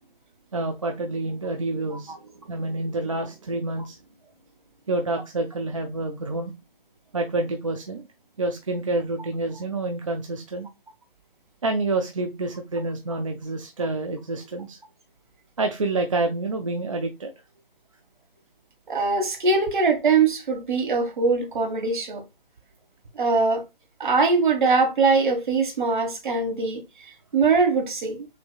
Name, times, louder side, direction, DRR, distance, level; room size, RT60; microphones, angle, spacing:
voice 1, 0.5-2.2 2.5-4.0 4.9-6.5 7.1-8.1 8.4-10.7 11.6-14.8 15.6-17.3, right 2 dB, 35° right, 0.4 m, -28 dB
voice 2, 18.9-22.2 23.2-23.6 24.0-26.8 27.3-28.3, right 4 dB, 55° right, 1.5 m, -22 dB
6.2 x 2.8 x 2.3 m
figure-of-eight pair, 150°, 29 cm